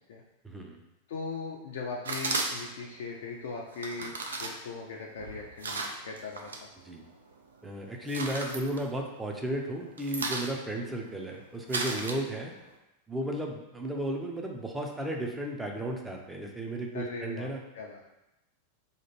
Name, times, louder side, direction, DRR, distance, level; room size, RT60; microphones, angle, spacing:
voice 1, 0.4-0.8 4.0-4.1 6.9-7.0 7.6-12.5 13.1-17.6, right 1 dB, 10° right, 1 dB, 0.5 m, -34 dB
voice 2, 1.1-6.7 11.8-12.0 16.9-18.1, left 4 dB, 60° left, -1 dB, 0.4 m, -39 dB
sound 1, 2.0-2.9 3.7-6.6 7.0-7.5 7.9-9.4 9.7-12.7, right 3 dB, 70° right, 0.4 m, -36 dB
2.9 x 2.4 x 4.3 m, 0.93 s
figure-of-eight pair, 90°, 0 cm